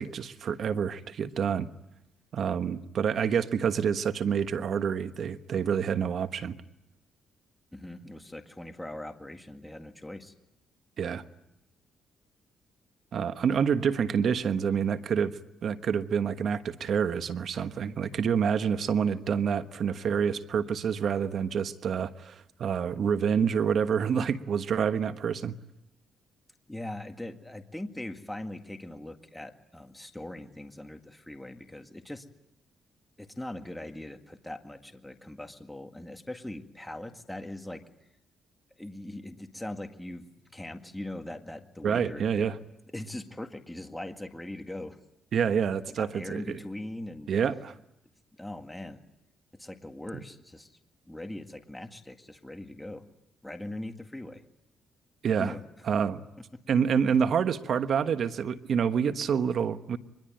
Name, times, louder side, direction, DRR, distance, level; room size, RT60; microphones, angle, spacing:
voice 1, 0.0-1.7 2.3-6.5 11.0-11.2 13.1-25.5 41.8-42.6 45.3-46.6 47.3-47.7 55.2-55.5 55.9-56.2 56.7-60.0, right 7 dB, 60° right, 10 dB, 1.2 m, -27 dB
voice 2, 7.7-10.3 26.7-32.2 33.2-37.8 38.8-40.3 40.5-42.5 42.9-45.0 45.9-47.3 48.4-49.0 49.5-50.7 51.1-53.0 53.4-54.4 55.4-55.6, left 1 dB, 5° left, 6 dB, 1.9 m, -40 dB
24.5 x 21.5 x 9.0 m, 0.85 s
cardioid pair, 90°, 0 cm